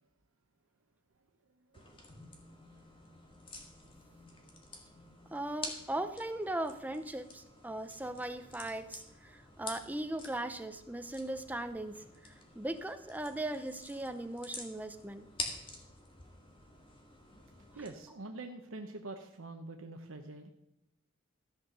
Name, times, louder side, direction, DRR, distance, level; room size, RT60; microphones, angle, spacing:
sound 1, 1.7-17.9, left 2 dB, 25° left, 1.8 m, -48 dB
voice 1, 5.3-12.0 12.2-15.3, right 1 dB, 10° right, 9 dB, 0.7 m, -38 dB
voice 2, 17.7-20.5, right 2 dB, 80° right, 4 dB, 0.8 m, -45 dB
14.0 x 5.8 x 6.6 m, 0.89 s
head